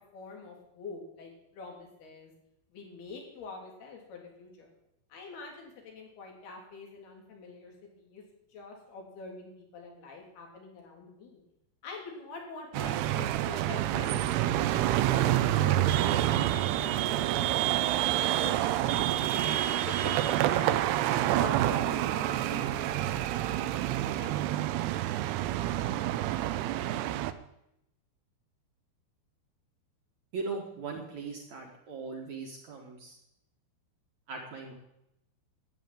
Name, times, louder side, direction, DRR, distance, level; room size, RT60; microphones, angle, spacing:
voice 1, 0.1-2.3 2.7-4.7 5.1-8.2 8.5-11.4 11.8-14.7 15.1-17.6 18.1-19.6 19.9-20.7 21.3-24.8, left 4 dB, 70° left, 0 dB, 5.0 m, -45 dB
sound 1, 12.7-27.3, right 13 dB, 80° right, 2.6 m, -28 dB
voice 2, 30.3-33.2 34.3-34.7, right 4 dB, 55° right, 1 dB, 2.6 m, -39 dB
12.5 x 8.9 x 9.1 m, 0.83 s
omnidirectional pair, 4.8 m